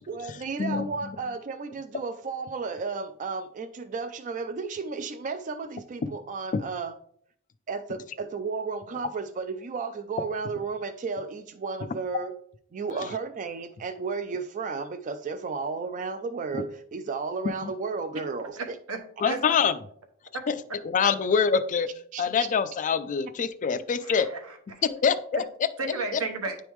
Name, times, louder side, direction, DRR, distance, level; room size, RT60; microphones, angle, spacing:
voice 1, 0.1-6.9 7.7-12.3 12.7-18.8 21.1-21.2 22.1-22.3, right 4 dB, 35° right, 9 dB, 0.3 m, -33 dB
voice 2, 18.6-19.4 24.0-24.6 25.3-25.4 25.8-26.6, right 4 dB, 85° right, 4 dB, 1.1 m, -33 dB
voice 3, 19.2-19.7 20.5-20.6 20.8-21.9 22.2-24.3 25.0-25.7 26.1-26.2, left 6 dB, 35° left, 12 dB, 0.4 m, -25 dB
9.8 x 3.5 x 3.1 m, 0.64 s
head